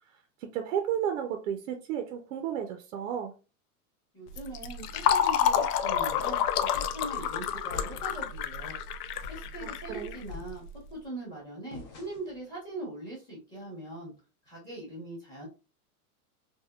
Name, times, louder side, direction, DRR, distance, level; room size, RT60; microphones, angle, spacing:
voice 1, 0.5-3.3 9.6-10.1, right 9 dB, 60° right, 0.5 m, -32 dB
voice 2, 4.1-8.8 9.3-10.6 10.9-14.1 14.5-15.5, right 1 dB, 10° left, 0.8 m, -41 dB
Fill (with liquid), 4.3-10.7, left 9 dB, 75° left, 0.5 m, -29 dB
sound 1, 6.7-7.1 7.7-8.3 8.7-8.8 9.2-9.6 10.3-11.0 11.7-12.4, left 4 dB, 30° left, 0.5 m, -43 dB
3.5 x 2.2 x 2.2 m
supercardioid pair, 155°, 46 cm